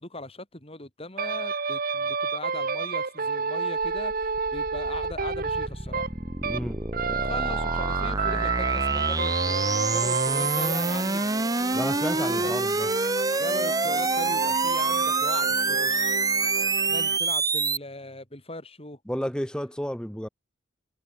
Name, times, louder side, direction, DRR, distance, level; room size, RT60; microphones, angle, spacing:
voice 1, 0.0-6.1 7.1-11.3 12.2-12.5 13.4-16.2 16.9-19.0, left 2 dB, 30° left, 6.2 m, -39 dB
sound 1, 1.2-6.7 6.9-17.2, right 4 dB, 50° right, 1.4 m, -30 dB
sound 2, 3.8-17.8, right 3 dB, 20° right, 1.1 m, -27 dB
voice 2, 6.4-6.8 11.7-12.9 19.0-20.3, equal, 5° left, 1.6 m, -31 dB
head